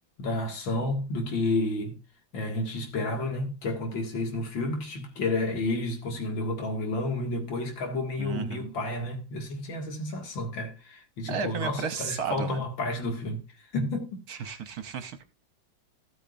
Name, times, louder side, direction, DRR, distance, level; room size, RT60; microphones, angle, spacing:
voice 1, 0.2-2.0 2.3-13.4 13.7-14.6, left 2 dB, 80° left, 2.8 m, -31 dB
voice 2, 8.2-8.7 11.3-12.6 14.3-15.2, right 6 dB, 60° right, 1.2 m, -33 dB
14.5 x 8.8 x 2.5 m
omnidirectional pair, 2.1 m